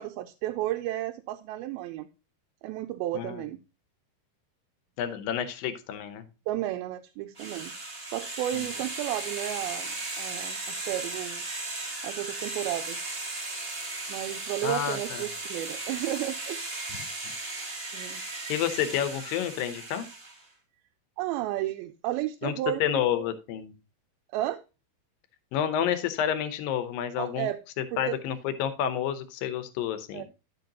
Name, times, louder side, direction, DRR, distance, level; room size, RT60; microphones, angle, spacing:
voice 1, 0.0-2.1 2.6-3.6 6.5-7.7 8.1-11.5 12.0-13.2 14.1-16.6 17.9-18.2 21.2-22.8 24.3-24.6 27.2-27.6 27.9-28.2 30.1-30.2, right 14 dB, 85° right, 6 dB, 2.4 m, -33 dB
voice 2, 5.0-6.2 8.5-8.6 14.6-15.2 16.9-17.1 18.5-20.1 22.4-22.5 22.8-23.7 25.5-27.5 28.0-30.2, left 9 dB, 75° left, 10 dB, 2.5 m, -29 dB
sound 1, 7.4-20.4, right 2 dB, 45° right, 0.7 m, -36 dB
10.5 x 6.6 x 2.9 m, 0.29 s
omnidirectional pair, 4.3 m